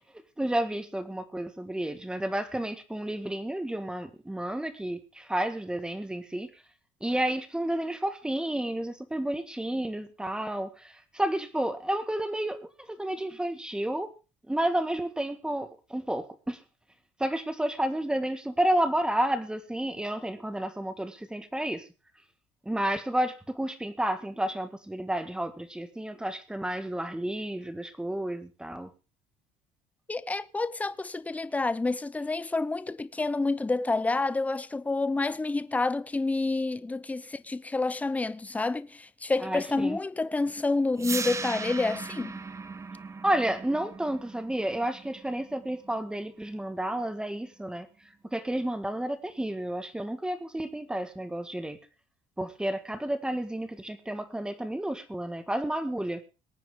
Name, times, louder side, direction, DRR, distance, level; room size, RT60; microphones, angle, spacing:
voice 1, 0.4-6.5 7.0-12.6 12.9-14.1 14.5-16.6 17.2-21.9 22.6-28.9 39.4-40.0 43.2-47.9 48.3-51.8 52.4-56.2, right 1 dB, 5° right, 1.6 m, -31 dB
voice 2, 30.1-42.4, left 3 dB, 10° left, 0.7 m, -29 dB
sound 1, 41.0-47.0, right 4 dB, 20° right, 1.0 m, -38 dB
22.0 x 9.1 x 3.7 m
cardioid pair, 130°, 14 cm